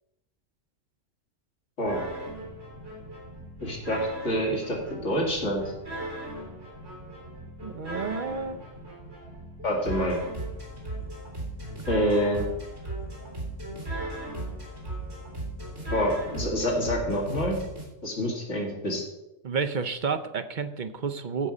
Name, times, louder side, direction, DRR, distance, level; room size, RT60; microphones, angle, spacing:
sound 1, 1.9-17.8, right 1 dB, 75° right, 3.4 m, -37 dB
voice 1, 3.6-5.7 9.6-10.2 11.9-12.4 15.9-17.6 18.0-19.0, equal, 75° left, -1 dB, 2.4 m, -27 dB
voice 2, 7.6-8.6 19.4-21.5, right 5 dB, 50° right, 8 dB, 0.7 m, -30 dB
15.0 x 5.4 x 4.9 m, 0.93 s
omnidirectional pair, 1.3 m